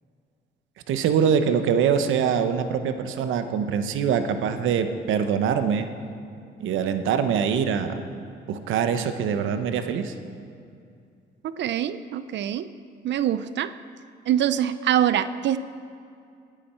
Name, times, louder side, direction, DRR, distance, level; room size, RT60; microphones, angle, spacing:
voice 1, 0.9-5.9 6.6-8.0 8.5-10.1, right 7 dB, 85° right, 8 dB, 1.0 m, -24 dB
voice 2, 11.4-12.7 13.0-13.7 14.3-15.6, right 10 dB, 65° right, 13 dB, 0.5 m, -24 dB
18.5 x 10.0 x 4.4 m, 2.4 s
cardioid pair, 90°, 20 cm